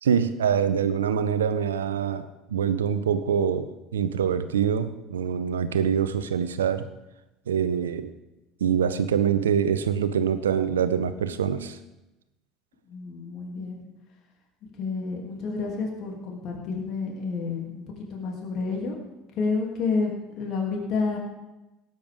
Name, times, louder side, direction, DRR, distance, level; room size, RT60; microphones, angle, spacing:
voice 1, 0.0-6.8 7.5-8.1 8.6-11.8, right 8 dB, 80° right, 12 dB, 0.7 m, -25 dB
voice 2, 12.9-13.8 14.8-17.8 18.1-19.0 19.4-21.2, left 4 dB, 50° left, 0 dB, 2.8 m, -29 dB
18.0 x 9.1 x 3.6 m, 0.99 s
hypercardioid pair, 70°, 0 cm